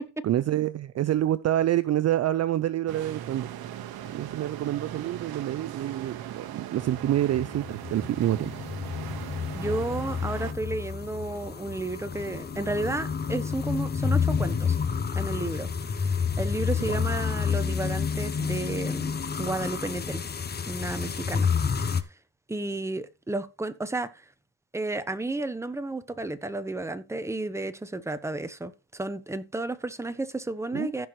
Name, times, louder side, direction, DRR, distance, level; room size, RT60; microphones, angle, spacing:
voice 1, 0.2-3.5 4.1-8.7 16.8-17.1 30.7-30.9, right 12 dB, 40° right, 0.5 m, -27 dB
sound 1, 2.9-10.5, right 11 dB, 65° right, 1.2 m, -39 dB
sound 2, 6.8-22.0, left 6 dB, 25° left, 0.9 m, -29 dB
voice 2, 9.5-14.8 15.1-20.2 20.7-21.5 22.5-24.2 24.7-31.1, right 2 dB, 5° right, 1.0 m, -32 dB
15.5 x 6.0 x 3.1 m
cardioid pair, 120°, 39 cm